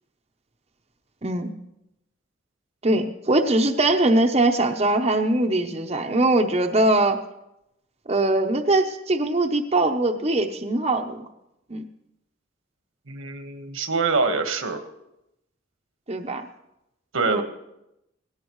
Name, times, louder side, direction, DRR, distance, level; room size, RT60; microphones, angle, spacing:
voice 1, 1.2-1.5 2.8-7.2 8.1-11.3 11.7-11.8 16.1-16.5 17.2-17.4, right 2 dB, 30° right, 4 dB, 0.8 m, -21 dB
voice 2, 13.1-14.8 17.1-17.4, right 4 dB, 90° right, 7 dB, 1.5 m, -24 dB
17.5 x 17.0 x 3.1 m, 0.88 s
head